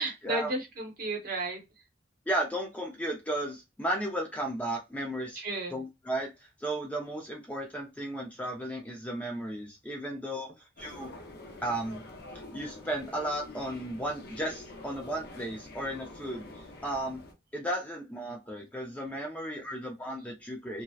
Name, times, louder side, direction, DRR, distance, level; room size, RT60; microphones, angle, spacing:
voice 1, 0.0-1.6 5.3-5.8, right 2 dB, 50° right, 2 dB, 0.8 m, -33 dB
voice 2, 2.3-5.4 5.7-6.3 6.6-11.1 11.6-12.0 12.5-17.2 17.5-20.8, right 1 dB, 10° left, 1 dB, 0.4 m, -34 dB
sound 1, 10.8-17.3, left 2 dB, 50° left, 0.6 m, -47 dB
2.7 x 2.0 x 2.2 m, 0.23 s
head